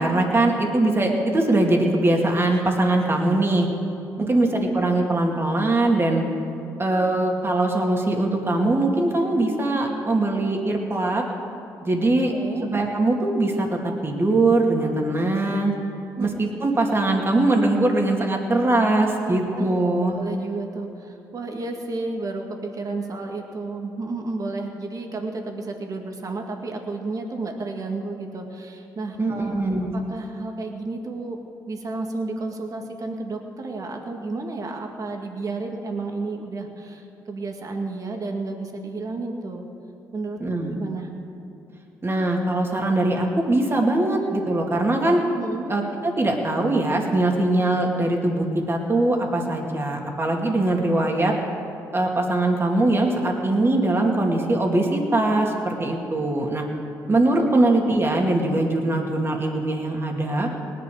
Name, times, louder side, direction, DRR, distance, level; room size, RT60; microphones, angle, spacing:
voice 1, 0.0-3.7 4.3-6.2 6.8-11.2 11.8-12.3 12.6-15.7 16.2-20.2 29.2-29.9 40.4-40.7 42.0-45.2 45.7-51.3 51.9-56.6 57.1-60.5, right 2 dB, 30° right, 1 dB, 2.5 m, -21 dB
voice 2, 12.3-12.7 16.2-16.3 19.2-19.9 20.2-29.6 29.9-31.4 31.7-39.7 40.1-41.1 45.4-45.7 57.5-57.7, right 3 dB, 45° right, 3 dB, 2.0 m, -32 dB
19.0 x 11.0 x 5.1 m, 2.8 s
supercardioid pair, 60°, 8 cm